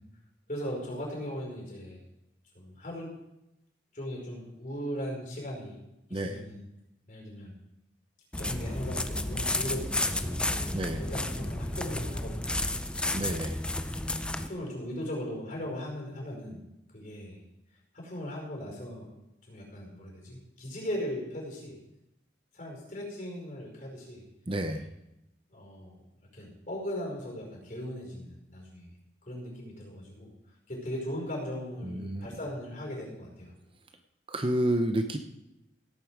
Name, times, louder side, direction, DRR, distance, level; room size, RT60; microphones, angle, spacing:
voice 1, 0.5-2.0 2.5-3.1 3.9-5.8 6.1-6.6 7.1-7.5 8.4-12.6 14.4-16.6 16.9-17.4 17.9-19.1 19.5-21.8 22.5-24.2 25.5-26.0 26.3-28.9 29.3-30.3 30.7-33.5, equal, 45° left, -1 dB, 5.1 m, -38 dB
sound 1, 8.3-14.5, left 1 dB, 5° left, 0.4 m, -32 dB
voice 2, 13.1-13.6 24.5-24.8 31.8-32.3 34.3-35.2, right 1 dB, 30° right, 7 dB, 0.7 m, -29 dB
17.5 x 8.5 x 4.8 m, 0.89 s
head